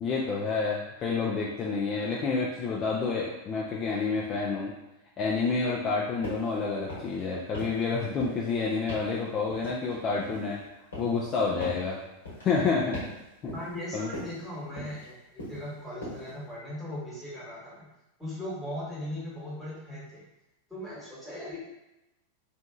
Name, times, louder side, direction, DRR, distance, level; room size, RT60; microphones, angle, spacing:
voice 1, 0.0-4.7 5.2-10.6 11.0-12.0 12.4-13.0 13.4-13.5 13.9-14.1, left 4 dB, 30° left, -4 dB, 0.4 m, -29 dB
sound 1, 6.2-6.5 6.8-7.2 7.5-7.9 8.2-8.5 8.9-9.1 9.5-10.5 10.9-11.2 11.6-11.9 12.3-12.5 12.9-13.2 13.5-13.8 14.1-14.4 14.8-15.1 15.4-15.7 16.0-16.3, left 1 dB, 70° left, 1.1 m, -39 dB
voice 2, 13.5-17.9 18.2-20.2 20.7-21.6, left 1 dB, ahead, -9 dB, 1.2 m, -38 dB
2.7 x 2.5 x 2.3 m, 0.94 s
figure-of-eight pair, 90°, 0 cm